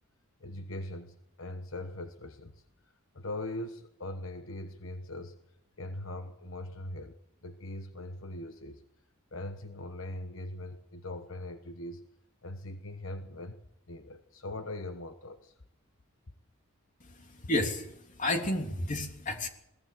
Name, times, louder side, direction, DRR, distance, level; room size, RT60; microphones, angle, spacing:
voice 1, 0.4-5.3 5.8-7.1 7.4-8.8 9.3-12.0 12.4-13.6 13.9-15.6, left 1 dB, 70° left, 8 dB, 1.2 m, -41 dB
voice 2, 17.0-19.5, left 1 dB, 35° left, 4 dB, 3.1 m, -32 dB
21.5 x 18.0 x 7.7 m, 0.79 s
head